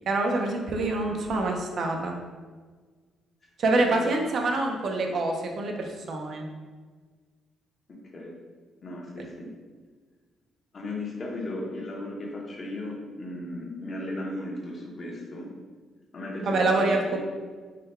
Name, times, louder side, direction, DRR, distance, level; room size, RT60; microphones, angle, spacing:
voice 1, 0.1-2.1 3.6-6.5 16.4-17.2, right 2 dB, 60° right, 2 dB, 0.5 m, -26 dB
voice 2, 3.9-4.3 7.9-8.4 8.8-9.5 10.7-15.5 16.1-17.2, left 1 dB, 40° left, -2 dB, 0.8 m, -36 dB
3.7 x 2.2 x 4.2 m, 1.5 s
cardioid pair, 115°, 0 cm